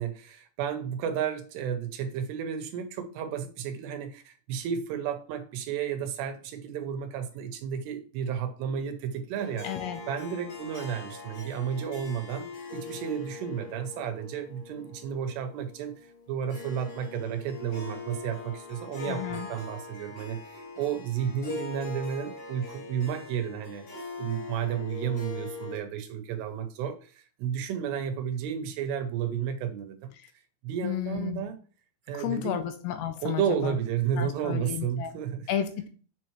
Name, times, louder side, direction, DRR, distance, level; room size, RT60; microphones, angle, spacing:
voice 1, 0.0-9.7 10.1-12.5 12.7-23.8 24.2-30.1 30.6-31.6 32.1-32.6 33.2-35.5, right 8 dB, 80° right, 8 dB, 2.6 m, -32 dB
Harp, 9.3-25.8, left 4 dB, 45° left, 2.3 m, -42 dB
voice 2, 9.6-10.0 19.1-19.5 30.2-30.3 30.8-31.4 32.1-33.8 34.2-35.1 35.5-35.9, left 10 dB, 80° left, 8 dB, 2.6 m, -32 dB
7.5 x 5.4 x 3.1 m, 0.40 s
omnidirectional pair, 5.1 m